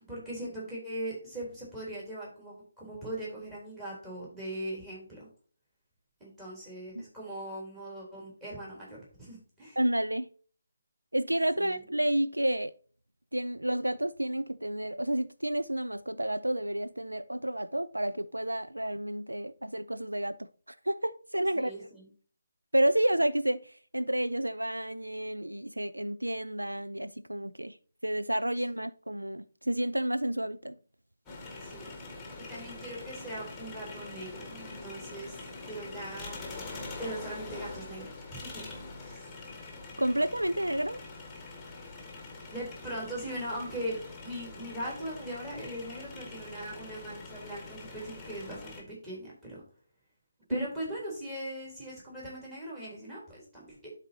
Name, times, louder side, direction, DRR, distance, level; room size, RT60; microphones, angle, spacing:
voice 1, 0.1-5.3 6.2-9.8 11.6-11.8 21.6-22.1 31.6-31.9 32.4-35.4 35.6-36.4 37.0-38.7 39.0-39.3 41.7-41.8 42.5-49.6 50.5-53.9, right 1 dB, 10° right, 3.4 m, -40 dB
voice 2, 9.8-10.3 11.1-12.7 13.3-21.7 22.7-27.8 28.0-30.7 40.0-41.0 50.5-50.7, right 1 dB, 85° right, 0.4 m, -30 dB
sound 1, 31.3-48.8, left 3 dB, 10° left, 1.5 m, -44 dB
12.0 x 4.1 x 2.8 m
figure-of-eight pair, 150°, 0 cm